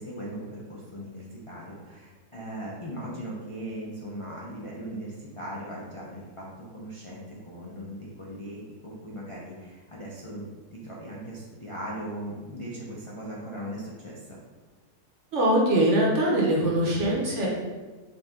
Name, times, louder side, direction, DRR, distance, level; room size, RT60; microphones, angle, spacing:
voice 1, 0.0-14.4, right 1 dB, 40° left, -6 dB, 0.4 m, -39 dB
voice 2, 15.3-17.5, right 1 dB, 55° right, -3 dB, 1.1 m, -22 dB
5.2 x 2.7 x 3.6 m, 1.3 s
omnidirectional pair, 1.7 m